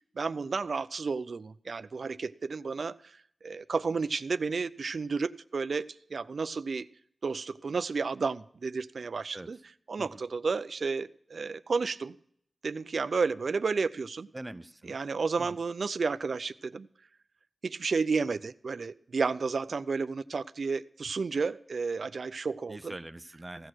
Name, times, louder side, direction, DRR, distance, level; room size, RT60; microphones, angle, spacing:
voice 1, 0.2-3.2 3.4-6.9 7.2-9.6 9.9-12.2 12.6-14.3 14.8-16.9 17.6-23.0, right 4 dB, 70° right, 15 dB, 0.4 m, -32 dB
voice 2, 14.3-15.0 15.4-15.5 22.7-23.7, right 1 dB, 20° right, 13 dB, 0.6 m, -43 dB
16.0 x 6.5 x 6.1 m, 0.66 s
wide cardioid pair, 75°, 0 cm